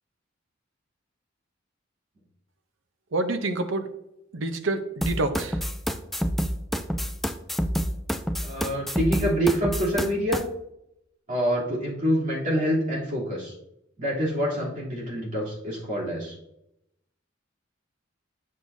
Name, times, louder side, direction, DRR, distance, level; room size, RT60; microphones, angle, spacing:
voice 1, 3.1-3.9 4.3-5.6, right 2 dB, 85° right, 8 dB, 0.8 m, -27 dB
sound 1, 5.0-10.4, equal, ahead, 0.4 m, -28 dB
voice 2, 8.4-10.4 11.3-13.5 14.0-16.3, equal, 45° right, -6 dB, 3.1 m, -26 dB
9.8 x 6.6 x 2.7 m, 0.82 s
head